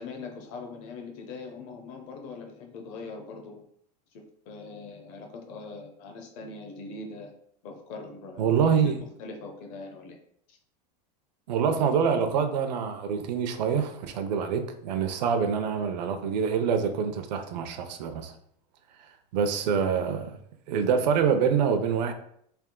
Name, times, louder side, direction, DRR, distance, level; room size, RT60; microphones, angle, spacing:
voice 1, 0.0-3.6 4.1-7.3 7.6-8.7 9.2-10.2 10.5-10.6, left 3 dB, 40° left, 0.7 m, -42 dB
voice 2, 8.4-9.0 11.5-18.3 19.3-20.4 20.7-22.1, right 6 dB, 90° right, 0.6 m, -25 dB
3.5 x 2.8 x 3.7 m
supercardioid pair, 180°, 21 cm